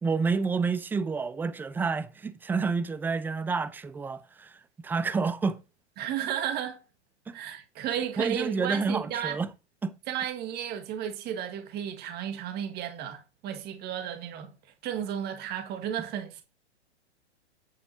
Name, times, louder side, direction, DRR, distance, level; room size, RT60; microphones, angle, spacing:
voice 1, 0.0-5.6 7.3-7.4 8.2-9.5 9.8-9.9, right 4 dB, 5° right, 0.4 m, -29 dB
voice 2, 6.0-6.8 7.3-9.4 10.1-14.5 14.8-16.4, right 9 dB, 30° right, 1.7 m, -33 dB
9.0 x 8.7 x 2.8 m
hypercardioid pair, 115°, 34 cm